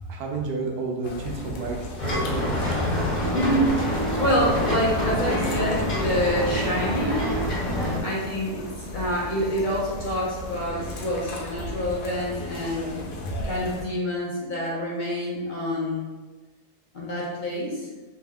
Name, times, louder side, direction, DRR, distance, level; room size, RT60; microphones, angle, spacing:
voice 1, 0.1-2.6, right 4 dB, 80° right, 0 dB, 1.2 m, -31 dB
sound 1, 1.0-13.8, left 1 dB, 85° left, 1.2 m, -36 dB
sound 2, 2.0-8.0, left 1 dB, 30° left, 0.6 m, -26 dB
voice 2, 3.3-7.2 8.0-13.1 13.4-16.1 16.9-17.9, equal, 65° left, -5 dB, 0.4 m, -27 dB
3.4 x 2.7 x 3.4 m, 1.2 s
omnidirectional pair, 1.7 m